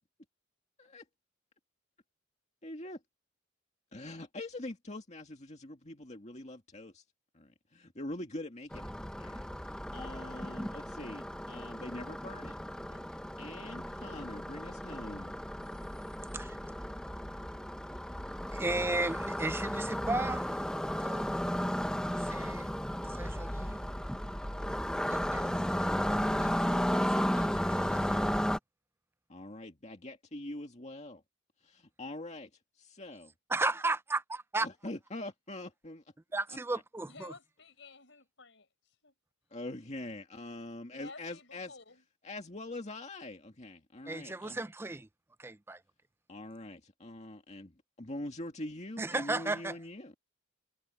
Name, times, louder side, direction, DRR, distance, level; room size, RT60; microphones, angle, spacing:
voice 1, 2.6-3.0 3.9-7.0 7.3-8.9 9.2-9.4 9.9-15.4 29.3-31.2 31.6-32.5 32.8-33.3 34.6-36.0 36.7-36.8 39.5-41.8 42.2-44.6 46.3-50.2, left 1 dB, 35° left, 2.2 m, -44 dB
sound 1, 8.7-28.6, equal, 5° left, 0.9 m, -34 dB
voice 2, 18.5-20.6 21.0-21.4 22.0-22.7 23.0-23.8 25.1-28.5 33.5-34.2 34.5-34.7 36.3-37.3 44.1-45.1 45.4-45.8 49.0-49.7, right 2 dB, 10° right, 0.5 m, -35 dB
voice 3, 37.1-38.7 39.0-39.1 40.9-42.0, left 3 dB, 65° left, 7.3 m, -52 dB
head